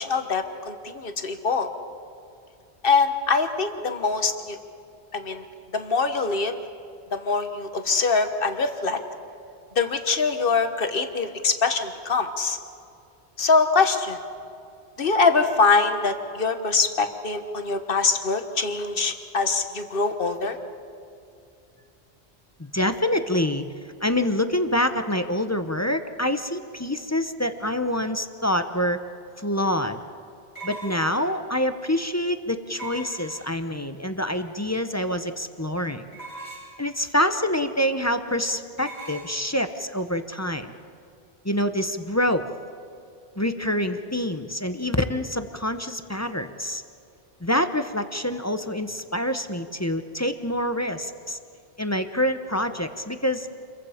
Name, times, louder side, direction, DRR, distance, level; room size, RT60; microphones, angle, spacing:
voice 1, 0.0-1.7 2.8-4.6 5.1-5.4 5.7-6.5 7.1-9.0 9.7-12.6 13.4-14.2 15.0-20.6, left 4 dB, 55° left, 7 dB, 1.5 m, -23 dB
voice 2, 22.6-23.7 24.0-29.0 29.4-30.0 30.6-36.0 36.8-40.7 41.4-42.5 43.4-46.8 47.4-51.4 51.8-53.5, left 1 dB, 15° left, 8 dB, 0.8 m, -26 dB
sound 1, 30.6-31.4 32.8-33.7 36.1-36.8 38.8-39.3, right 2 dB, 65° right, 7.8 m, -39 dB
28.0 x 22.5 x 5.1 m, 2.5 s
omnidirectional pair, 1.1 m